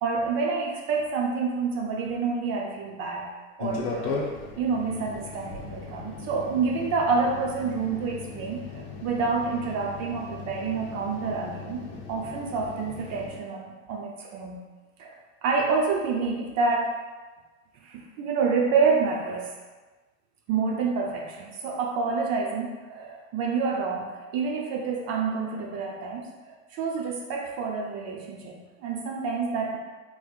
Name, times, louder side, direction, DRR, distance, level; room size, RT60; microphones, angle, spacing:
voice 1, 0.0-3.3 3.6-4.3 4.5-11.8 12.1-14.6 15.0-16.9 17.8-19.5 20.5-29.8, right 4 dB, 40° right, -1 dB, 0.6 m, -28 dB
sound 1, 3.6-13.4, left 4 dB, 60° left, 0.8 m, -37 dB
3.5 x 3.0 x 2.3 m, 1.3 s
hypercardioid pair, 110°, 41 cm